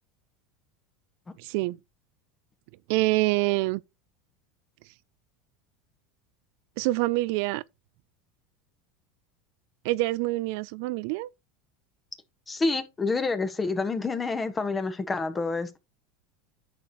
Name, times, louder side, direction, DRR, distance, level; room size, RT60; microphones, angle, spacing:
voice 1, 1.4-1.8 2.9-3.8 6.8-7.6 9.8-11.3, right 20 dB, 70° right, 0.4 m, -26 dB
voice 2, 12.5-15.8, left 3 dB, 20° left, 1.6 m, -28 dB
9.9 x 6.7 x 3.1 m
supercardioid pair, 110°, 0 cm